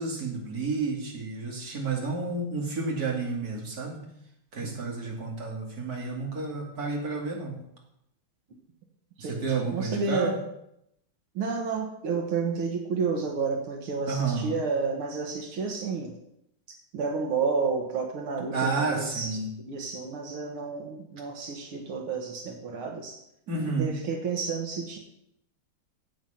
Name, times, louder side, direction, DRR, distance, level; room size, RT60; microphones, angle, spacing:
voice 1, 0.0-4.1 4.5-7.6 9.2-10.3 14.1-14.5 18.5-19.5 23.5-23.9, right 4 dB, 45° right, -1 dB, 2.9 m, -30 dB
voice 2, 4.6-5.0 9.2-10.4 11.4-16.1 16.7-19.4 19.6-23.2 23.7-25.0, right 5 dB, 85° right, 3 dB, 2.4 m, -31 dB
13.0 x 7.9 x 5.9 m, 0.79 s
omnidirectional pair, 2.3 m